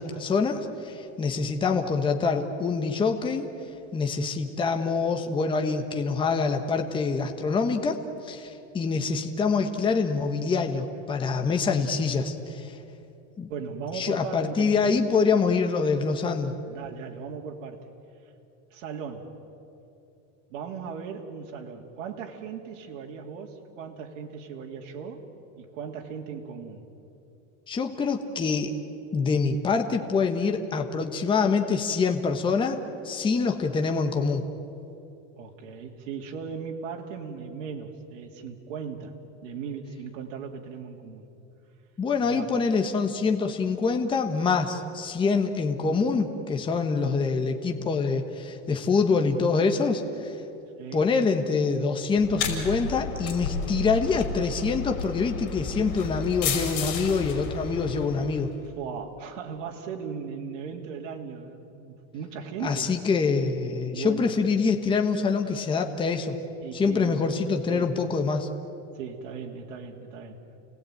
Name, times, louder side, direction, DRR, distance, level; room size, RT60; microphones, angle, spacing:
voice 1, 0.0-3.4 3.9-12.8 13.4-13.5 13.9-16.5 27.7-28.8 29.1-32.8 33.0-34.4 42.0-50.3 50.9-58.5 62.6-66.3 66.7-68.5, left 4 dB, 15° left, 4 dB, 1.2 m, -25 dB
voice 2, 13.5-14.8 16.7-17.9 18.7-19.3 20.5-25.2 25.6-26.8 35.3-39.1 39.4-41.2 42.2-42.5 50.8-51.0 58.8-62.9 63.9-64.3 66.6-67.2 67.7-67.9 68.9-70.4, right 6 dB, 80° right, 0 dB, 2.9 m, -37 dB
sound 1, 52.2-58.6, left 5 dB, 60° left, 5.1 m, -32 dB
29.5 x 19.5 x 9.1 m, 2.8 s
supercardioid pair, 165°, 38 cm